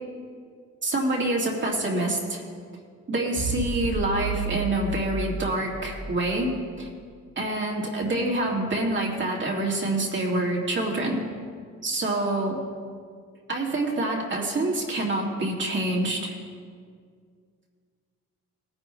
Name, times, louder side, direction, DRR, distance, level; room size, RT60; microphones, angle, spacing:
voice 1, 0.8-2.4 3.1-6.9 7.4-11.2 11.8-12.6 13.5-16.4, right 2 dB, 40° right, -2 dB, 2.5 m, -26 dB
sound 1, 3.3-6.8, right 3 dB, 60° right, 3.0 m, -32 dB
18.5 x 9.8 x 3.2 m, 2.1 s
cardioid pair, 90°, 30 cm